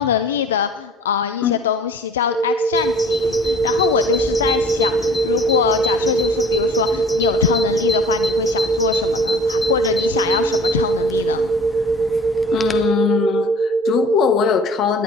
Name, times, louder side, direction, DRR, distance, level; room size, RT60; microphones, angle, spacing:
voice 1, 0.0-11.5, left 9 dB, 75° left, 0.4 m, -23 dB
sound 1, 2.3-14.2, right 3 dB, 20° right, 0.9 m, -21 dB
Bird vocalization bird call bird song, 2.7-12.9, left 3 dB, 20° left, 1.2 m, -30 dB
voice 2, 12.5-15.0, left 7 dB, 50° left, 1.2 m, -20 dB
18.5 x 11.0 x 4.7 m
figure-of-eight pair, 55°, 0 cm